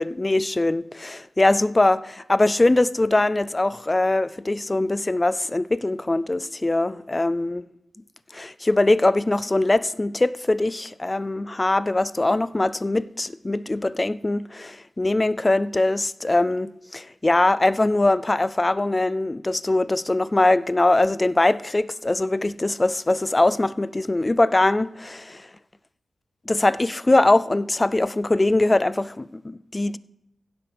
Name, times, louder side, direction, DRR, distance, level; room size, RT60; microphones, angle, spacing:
voice 1, 0.0-7.6 8.3-25.5 26.5-30.0, left 2 dB, 20° left, 0.3 m, -22 dB
16.0 x 12.0 x 3.4 m
wide cardioid pair, 120°, 0 cm